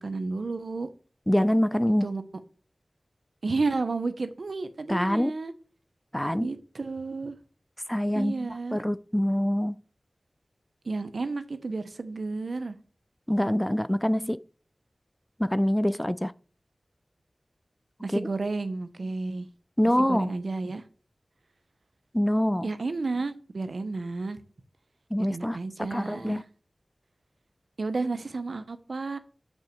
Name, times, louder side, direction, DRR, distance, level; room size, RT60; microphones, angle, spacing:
voice 1, 0.0-0.9 2.0-2.2 3.4-5.5 6.4-7.3 8.1-8.8 10.8-12.8 18.0-19.5 20.0-20.8 22.6-24.4 25.2-26.4 27.8-29.2, right 3 dB, 75° right, 0.8 m, -31 dB
voice 2, 1.3-2.1 4.9-5.4 6.1-6.5 7.9-9.8 13.3-14.4 15.4-16.3 18.1-18.3 19.8-20.3 22.1-22.7 25.1-25.6 25.9-26.4, equal, 10° left, 0.3 m, -25 dB
6.0 x 5.5 x 7.0 m
wide cardioid pair, 50°, 0 cm